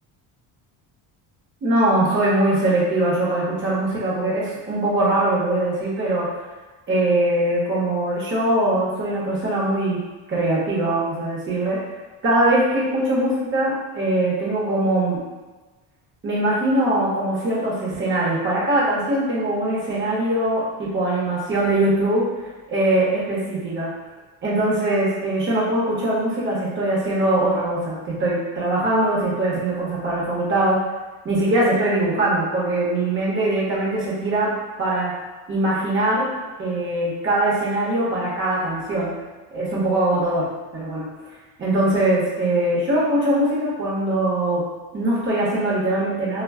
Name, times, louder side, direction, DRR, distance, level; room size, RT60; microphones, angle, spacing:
voice 1, 1.6-6.3 6.9-10.0 10.3-11.8 12.2-15.2 16.2-22.2 22.7-23.9 24.4-30.8 31.2-34.5 34.8-35.1 35.5-36.3 36.6-39.1 39.5-40.5 40.7-41.1 41.6-44.6 44.9-46.4, right 1 dB, 30° right, -6 dB, 0.8 m, -21 dB
2.1 x 2.1 x 3.4 m, 1.2 s
cardioid pair, 135°, 42 cm